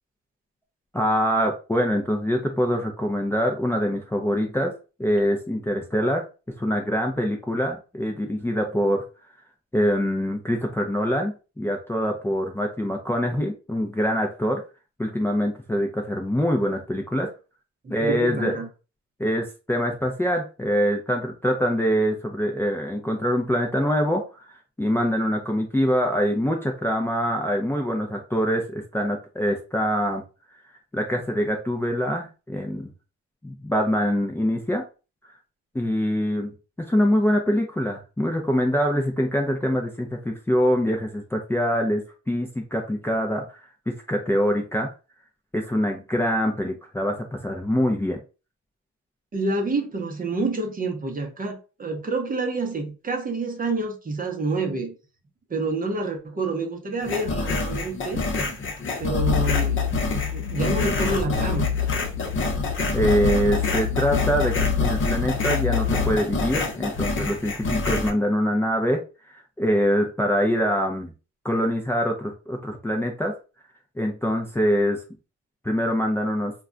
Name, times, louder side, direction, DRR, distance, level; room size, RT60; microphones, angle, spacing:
voice 1, 0.9-4.7 5.0-6.2 6.6-9.0 9.7-14.6 15.0-17.3 17.9-18.5 19.2-24.5 24.8-30.2 30.9-32.9 33.4-34.8 35.2-35.3 35.7-36.5 36.9-43.5 43.9-44.9 45.5-48.2 62.9-69.0 69.3-71.1 71.4-73.3 74.0-75.0 75.6-76.5, equal, 10° left, 0.5 m, -24 dB
voice 2, 17.8-18.7 49.3-54.9 55.5-58.2 59.0-59.8 60.3-61.7, right 3 dB, 30° right, 0.7 m, -28 dB
sound 1, 57.0-68.1, left 3 dB, 40° left, 0.8 m, -27 dB
sound 2, 59.2-66.2, left 9 dB, 75° left, 0.5 m, -27 dB
2.3 x 2.2 x 3.7 m
cardioid pair, 90°, 30 cm